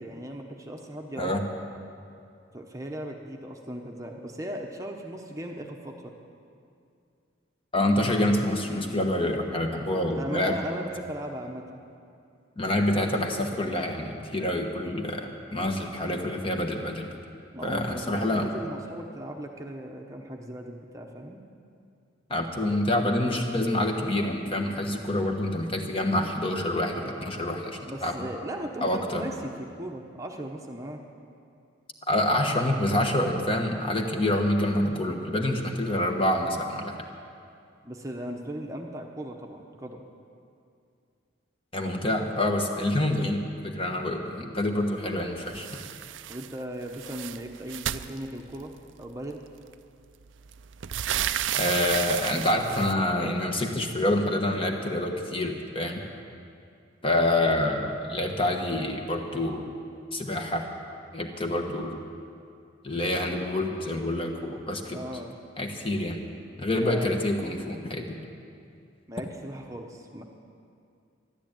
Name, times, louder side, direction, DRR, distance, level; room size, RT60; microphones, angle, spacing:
voice 1, 0.0-1.3 2.5-6.1 10.0-11.8 17.5-21.4 27.9-31.0 37.8-40.0 46.3-48.7 49.0-49.4 64.9-65.4 66.8-67.1 69.1-70.2, right 1 dB, 15° right, 1 dB, 0.9 m, -37 dB
voice 2, 7.7-10.6 12.6-17.1 17.6-18.4 22.3-28.3 28.8-29.2 32.1-36.9 41.7-45.7 51.6-56.0 57.0-59.7 60.1-60.7 61.1-62.0 62.8-65.0 65.6-66.2 66.6-68.2, left 1 dB, 30° left, 3 dB, 1.3 m, -27 dB
sound 1, 45.5-46.5 46.8-48.8 49.7-49.8 50.2-52.9, right 11 dB, 75° right, 0.5 m, -32 dB
13.5 x 12.0 x 9.0 m, 2.4 s
head